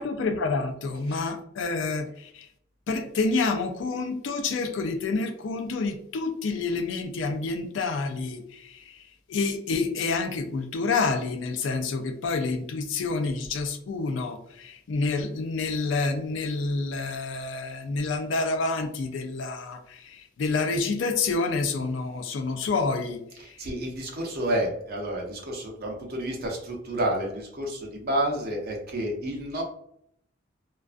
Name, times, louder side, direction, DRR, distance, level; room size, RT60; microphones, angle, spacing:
voice 1, 0.0-2.5 2.9-23.7, left 3 dB, 70° left, 6 dB, 0.4 m, -28 dB
voice 2, 0.9-1.3 23.3-29.6, right 1 dB, 55° right, 0 dB, 0.7 m, -30 dB
2.4 x 2.3 x 2.4 m, 0.72 s
head